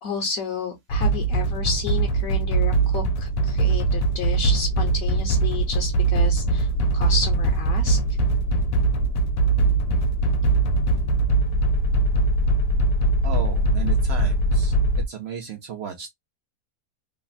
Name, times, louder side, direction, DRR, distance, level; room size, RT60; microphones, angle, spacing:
voice 1, 0.0-8.0, left 5 dB, 65° left, 1.0 m, -31 dB
sound 1, 0.9-15.1, right 2 dB, 90° left, 1.2 m, -21 dB
voice 2, 13.2-14.7 15.1-16.1, right 8 dB, 80° right, 0.5 m, -34 dB
3.2 x 2.1 x 2.4 m
omnidirectional pair, 1.8 m